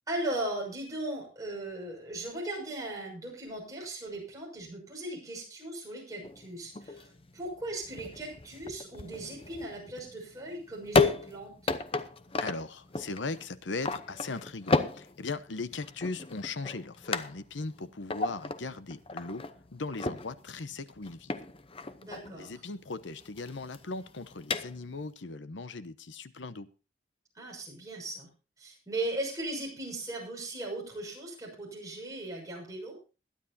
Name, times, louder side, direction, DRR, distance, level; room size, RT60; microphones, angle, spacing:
voice 1, 0.1-11.6 22.0-22.5 27.4-28.3 28.6-33.0, right 1 dB, 20° right, -2 dB, 6.4 m, -38 dB
sound 1, 6.2-25.1, left 3 dB, 30° left, 0.7 m, -34 dB
voice 2, 12.4-19.4 19.7-21.4 22.4-26.7, left 3 dB, 80° left, 13 dB, 0.9 m, -38 dB
21.0 x 10.0 x 2.7 m, 0.33 s
head